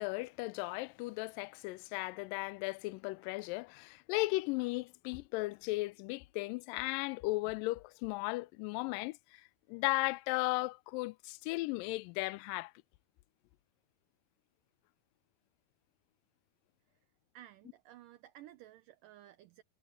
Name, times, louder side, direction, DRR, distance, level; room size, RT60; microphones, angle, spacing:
voice 1, 0.0-9.4 9.7-12.7, left 23 dB, 80° left, 2.0 m, -36 dB
voice 2, 17.3-19.6, right 13 dB, 70° right, 2.4 m, -55 dB
omnidirectional pair, 4.3 m